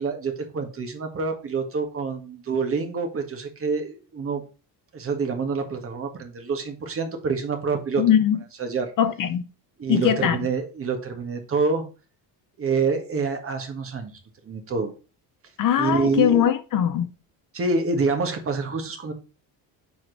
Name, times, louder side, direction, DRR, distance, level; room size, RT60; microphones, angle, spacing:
voice 1, 0.0-4.4 4.9-8.0 8.6-8.9 9.8-11.8 12.6-14.1 14.4-14.9 15.8-16.5 17.5-19.1, right 4 dB, 30° right, 1.7 m, -27 dB
voice 2, 8.0-8.4 9.0-9.4 9.9-10.4 15.6-17.1, left 9 dB, 50° left, 0.8 m, -21 dB
7.1 x 5.1 x 4.0 m
cardioid pair, 165°, 43 cm